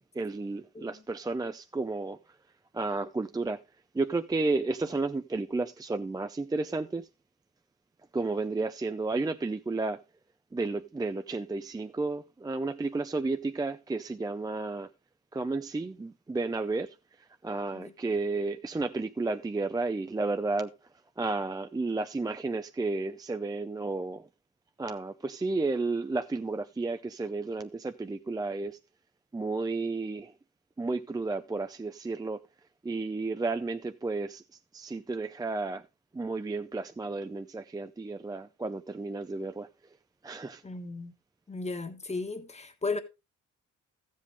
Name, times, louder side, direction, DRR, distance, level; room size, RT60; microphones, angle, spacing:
voice 1, 0.0-2.2 2.7-3.6 3.9-7.1 8.1-10.0 10.5-14.9 15.3-16.9 17.4-20.7 21.2-24.3 24.8-28.8 29.3-30.3 30.8-32.4 32.8-34.4 34.7-35.8 36.1-39.7 40.2-40.6, right 3 dB, 15° right, 0.5 m, -32 dB
voice 2, 40.6-41.1 41.5-43.0, left 3 dB, 20° left, 1.5 m, -35 dB
13.5 x 7.6 x 3.4 m
cardioid pair, 90°, 30 cm